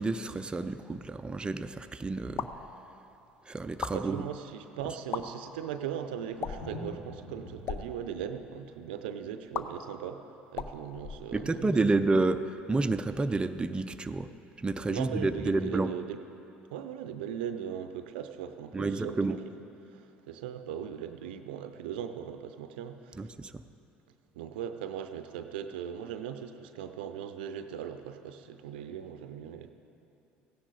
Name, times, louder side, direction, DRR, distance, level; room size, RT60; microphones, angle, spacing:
voice 1, 0.0-2.5 3.5-4.2 11.3-14.3 14.6-15.9 18.7-19.4 23.2-23.6, right 3 dB, 20° right, 9 dB, 0.5 m, -29 dB
sound 1, 2.4-2.7 3.7-4.0 5.0-5.2 6.4-6.8 7.5-7.8 9.5-9.6 10.5-11.7, left 8 dB, 50° left, 0.6 m, -37 dB
Thunder, 3.3-3.4 3.6-10.9 12.6-12.7, left 2 dB, 80° left, 1.6 m, -49 dB
voice 2, 3.9-10.2 10.5-11.8 14.9-16.2 16.7-19.4 19.9-23.3 24.4-29.7, right 9 dB, 75° right, 9 dB, 0.6 m, -39 dB
15.5 x 10.0 x 4.0 m, 2.8 s
hypercardioid pair, 65°, 5 cm